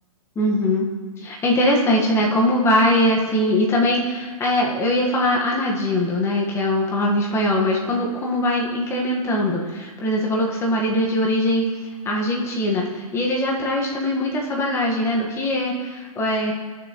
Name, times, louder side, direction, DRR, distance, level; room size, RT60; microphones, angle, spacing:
voice 1, 0.3-0.9 1.2-11.7 12.0-16.5, left 1 dB, 15° left, -2 dB, 1.5 m, -21 dB
14.0 x 6.8 x 3.1 m, 1.4 s
hypercardioid pair, 130°, 19 cm